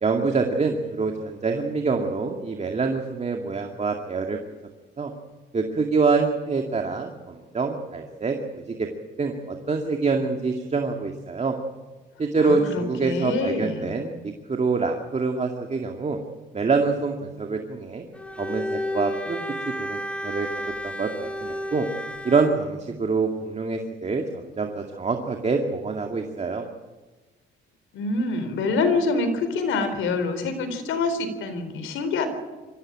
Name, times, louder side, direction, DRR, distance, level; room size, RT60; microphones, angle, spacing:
voice 1, 0.0-4.4 5.0-5.1 5.5-8.9 9.2-11.6 12.2-14.2 14.5-16.2 16.5-18.0 18.4-19.4 19.8-20.5 20.8-21.9 22.2-26.6, right 4 dB, 35° right, 3 dB, 2.2 m, -25 dB
voice 2, 12.4-14.0 27.9-32.3, left 3 dB, 80° left, 9 dB, 3.9 m, -26 dB
Bowed string instrument, 18.1-22.6, left 1 dB, 5° left, 1.6 m, -32 dB
23.5 x 15.5 x 8.8 m, 1.3 s
cardioid pair, 90°, 20 cm